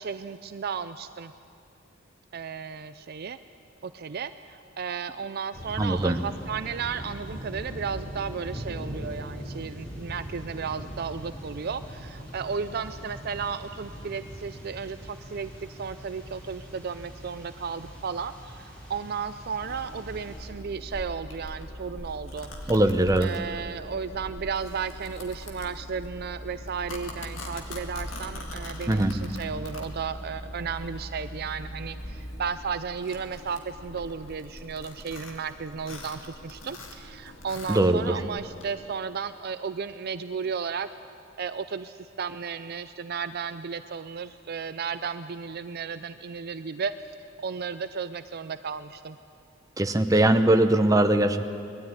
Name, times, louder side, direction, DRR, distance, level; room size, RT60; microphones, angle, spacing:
voice 1, 0.0-1.3 2.3-3.4 3.8-22.5 23.2-40.9 41.4-46.9 47.4-49.2, right 6 dB, 50° right, 12 dB, 0.4 m, -34 dB
sound 1, 5.5-20.5, equal, 5° left, 4.0 m, -41 dB
voice 2, 5.8-6.2 22.7-23.3 28.9-29.2 37.7-38.0 49.8-51.4, right 1 dB, 15° right, 7 dB, 0.8 m, -21 dB
Domestic sounds home sounds, 19.6-38.7, left 1 dB, 70° left, 2.4 m, -41 dB
20.5 x 13.0 x 9.6 m, 2.5 s
head